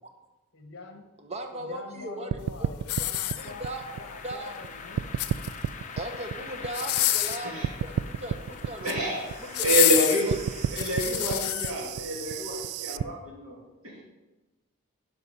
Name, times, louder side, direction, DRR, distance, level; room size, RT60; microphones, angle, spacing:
voice 1, 0.5-1.0 1.5-5.0, left 3 dB, 50° left, 5 dB, 1.2 m, -44 dB
voice 2, 1.2-3.1 3.3-4.6 6.0-9.0 9.4-9.7 10.0-10.3, right 1 dB, 30° right, 5 dB, 0.9 m, -38 dB
sound 1, 2.3-4.7 5.0-7.3 7.6-13.0, right 9 dB, 80° right, 0.3 m, -32 dB
sound 2, 2.8-3.9 5.0-5.7 6.7-7.5 8.6-9.0 9.5-11.7 12.3-12.4, left 14 dB, 85° left, 0.6 m, -27 dB
sound 3, 3.4-11.5, left 5 dB, 35° left, 0.7 m, -43 dB
voice 3, 8.8-9.2 9.6-10.4 10.7-13.6 13.8-13.9, right 1 dB, 65° right, -2 dB, 2.8 m, -28 dB
10.5 x 5.4 x 5.3 m, 1.1 s
head